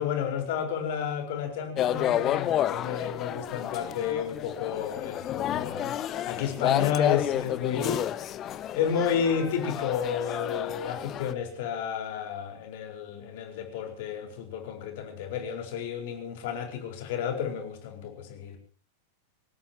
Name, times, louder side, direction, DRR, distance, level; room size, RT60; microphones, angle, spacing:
voice 1, 0.0-5.9 6.2-8.1 8.7-18.6, left 8 dB, 50° left, 5 dB, 4.7 m, -31 dB
sound 1, 1.8-11.3, left 11 dB, 30° left, 1.0 m, -30 dB
25.0 x 18.5 x 3.0 m, 0.40 s
figure-of-eight pair, 90°, 0 cm